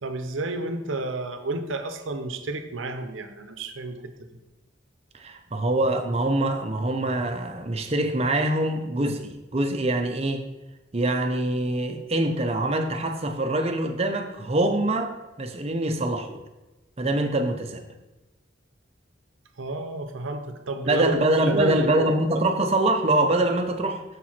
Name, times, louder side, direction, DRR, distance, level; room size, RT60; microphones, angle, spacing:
voice 1, 0.0-4.3 19.6-21.1 21.4-22.1, right 2 dB, 80° right, 7 dB, 0.7 m, -31 dB
voice 2, 5.1-10.5 10.9-15.1 15.4-16.4 17.0-17.8 20.8-24.0, right 1 dB, 30° right, 5 dB, 0.6 m, -24 dB
6.7 x 4.6 x 4.3 m, 1.1 s
head